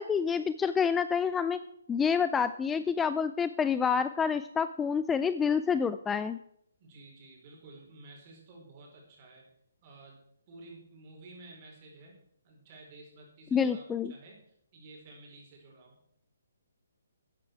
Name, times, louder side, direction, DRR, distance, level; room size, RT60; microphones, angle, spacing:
voice 1, 0.0-1.6 1.9-6.4 13.5-14.1, left 6 dB, 10° left, 12 dB, 0.3 m, -28 dB
voice 2, 6.8-9.5 9.8-10.2 10.5-13.8 14.1-14.4 14.7-16.0, right 2 dB, 35° right, -1 dB, 4.9 m, -52 dB
13.5 x 8.7 x 4.8 m, 0.73 s
hypercardioid pair, 145°, 0 cm